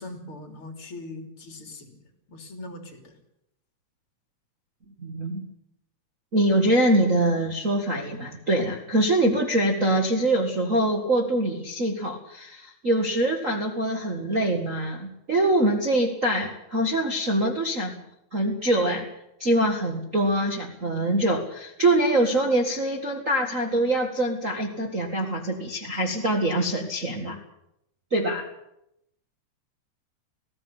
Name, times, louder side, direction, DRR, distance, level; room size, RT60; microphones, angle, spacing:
voice 1, 0.0-2.0 2.3-3.1, left 2 dB, 40° left, 5 dB, 3.8 m, -40 dB
voice 2, 5.0-5.5 6.3-18.0 18.3-19.1 19.4-27.4 28.1-28.5, right 1 dB, 30° right, 2 dB, 1.8 m, -24 dB
20.0 x 16.0 x 9.8 m, 0.81 s
omnidirectional pair, 3.7 m